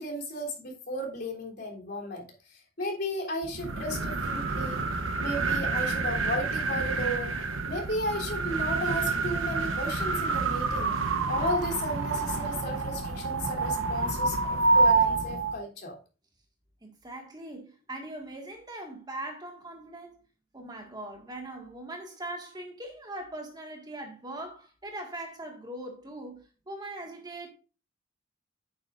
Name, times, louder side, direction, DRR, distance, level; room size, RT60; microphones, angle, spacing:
voice 1, 0.0-4.8 5.2-7.3 7.6-10.9 11.3-16.0, left 1 dB, 50° left, 3.4 m, -34 dB
sound 1, 3.4-15.6, right 3 dB, 85° right, 1.1 m, -28 dB
voice 2, 16.8-20.2 20.5-27.5, right 1 dB, 20° right, 1.9 m, -41 dB
10.5 x 9.6 x 2.6 m
head